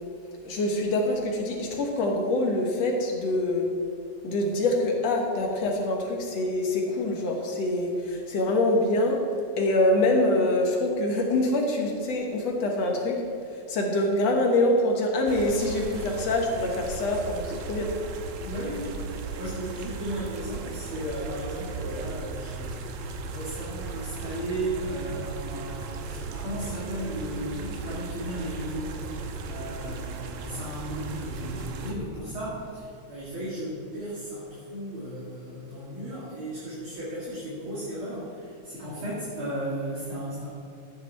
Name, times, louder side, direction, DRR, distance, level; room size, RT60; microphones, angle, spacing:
voice 1, 0.4-3.7 4.2-9.2 9.6-13.2 13.7-17.9, left 1 dB, 60° left, 0 dB, 2.2 m, -25 dB
sound 1, 15.3-31.9, right 3 dB, 75° right, 2.1 m, -36 dB
voice 2, 18.4-40.5, right 1 dB, 45° right, -8 dB, 2.8 m, -35 dB
13.5 x 9.6 x 4.1 m, 2.5 s
omnidirectional pair, 3.7 m